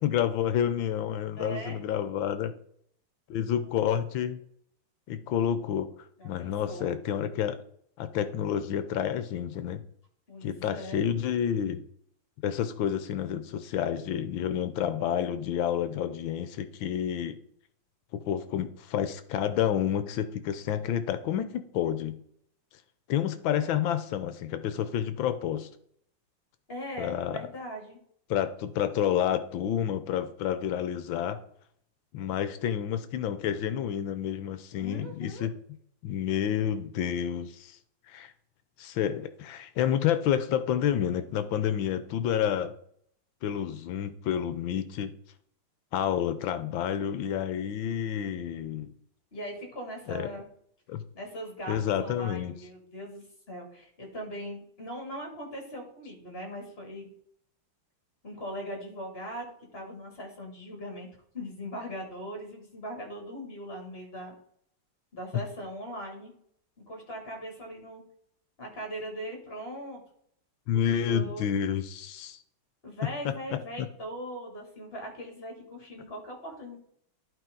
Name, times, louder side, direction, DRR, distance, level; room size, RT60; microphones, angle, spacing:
voice 1, 0.0-2.5 3.3-4.4 5.1-5.9 6.2-7.6 8.0-9.8 10.4-11.8 12.4-17.4 18.1-22.2 23.1-25.7 27.0-27.4 28.3-31.4 32.1-35.5 36.0-37.8 38.1-38.3 38.8-42.7 43.4-45.1 45.9-48.9 50.1-50.3 50.9-51.0 51.7-52.5 70.7-72.4 73.2-73.3, left 9 dB, 75° left, 11 dB, 1.4 m, -29 dB
voice 2, 1.3-1.8 6.2-6.9 10.3-11.0 26.7-28.0 34.7-35.5 49.3-50.5 51.1-57.1 58.2-61.1 61.3-64.3 65.1-66.3 66.8-68.0 68.6-70.0 70.7-71.4 72.8-76.8, equal, 25° left, 1 dB, 2.8 m, -40 dB
11.0 x 4.9 x 3.8 m, 0.66 s
omnidirectional pair, 2.3 m